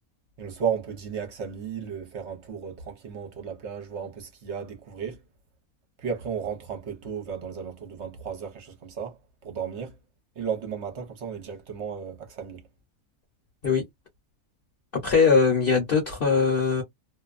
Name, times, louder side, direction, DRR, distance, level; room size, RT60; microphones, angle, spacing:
voice 1, 0.4-5.2 6.0-9.2 9.4-9.9 10.4-12.6, right 7 dB, 55° right, 1.0 m, -34 dB
voice 2, 15.0-16.8, left 5 dB, 45° left, 0.9 m, -21 dB
2.6 x 2.2 x 2.4 m
omnidirectional pair, 1.5 m